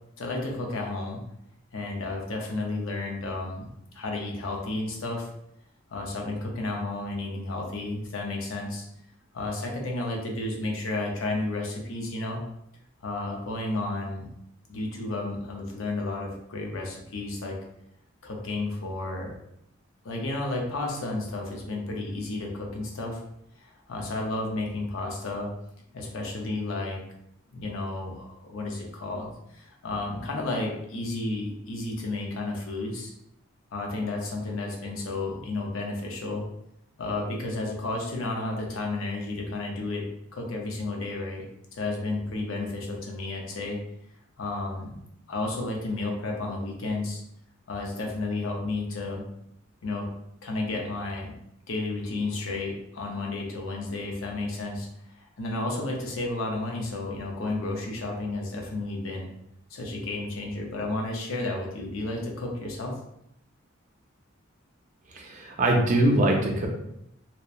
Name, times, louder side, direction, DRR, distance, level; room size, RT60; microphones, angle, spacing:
voice 1, 0.2-1.2 1.7-3.7 3.9-5.3 5.9-8.8 9.3-12.4 13.0-14.3 14.7-17.6 18.2-19.3 20.0-23.2 23.6-25.5 25.9-27.0 27.5-33.1 33.7-36.4 37.0-41.4 41.7-43.8 44.4-45.0 45.3-47.2 47.7-49.2 49.8-50.1 50.4-51.3 51.7-54.9 55.2-59.3 59.7-63.0, left 2 dB, 80° left, 0 dB, 0.6 m, -32 dB
voice 2, 65.1-66.7, right 1 dB, 35° right, 0 dB, 0.4 m, -22 dB
2.8 x 2.1 x 2.4 m, 0.77 s
head